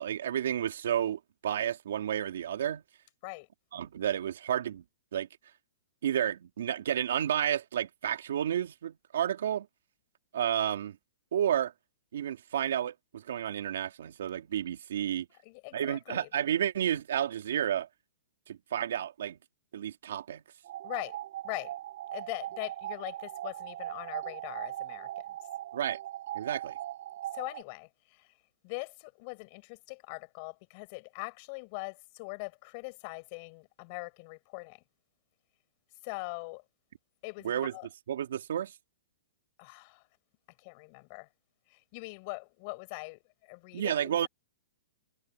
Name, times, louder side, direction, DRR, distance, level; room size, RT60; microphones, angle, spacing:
voice 1, 0.0-2.8 3.7-4.8 5.1-5.3 6.0-9.7 10.3-11.0 11.3-11.7 12.1-15.3 15.7-17.9 18.5-19.4 19.7-20.4 25.7-26.0 26.3-26.8 37.4-37.7 38.1-38.7 43.7-44.3, right 10 dB, 65° right, 2.9 m, -31 dB
voice 2, 15.4-16.3 20.8-21.2 21.4-21.7 22.1-25.3 27.3-28.3 28.6-34.8 36.0-36.6 37.2-37.9 39.6-40.0 40.6-41.3 41.7-44.3, left 31 dB, 30° left, 6.1 m, -42 dB
sound 1, 20.6-27.6, right 13 dB, 50° right, 7.9 m, -39 dB
hypercardioid pair, 170°, 0 cm